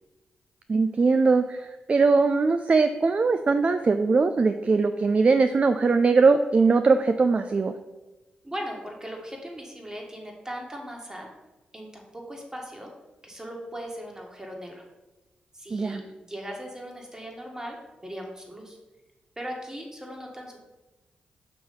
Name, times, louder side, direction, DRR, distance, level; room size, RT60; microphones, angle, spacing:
voice 1, 0.7-7.7 15.7-16.0, right 4 dB, 40° right, 9 dB, 0.3 m, -21 dB
voice 2, 8.4-11.3 11.7-12.9 13.2-14.8 15.5-17.8 18.0-18.8 19.4-20.6, equal, 20° right, 0 dB, 1.7 m, -38 dB
6.0 x 3.1 x 5.4 m, 1.1 s
supercardioid pair, 45°, 3 cm